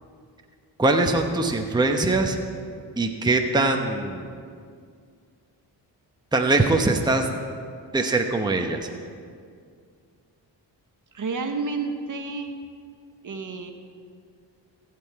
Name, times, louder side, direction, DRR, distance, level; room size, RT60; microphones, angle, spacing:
voice 1, 0.8-2.4 3.0-4.3 6.3-7.3 7.9-8.9, right 2 dB, 10° right, 4 dB, 0.9 m, -22 dB
voice 2, 11.1-12.5 13.2-13.7, right 4 dB, 45° right, 5 dB, 1.1 m, -30 dB
15.5 x 7.7 x 4.7 m, 2.2 s
cardioid pair, 70°, 44 cm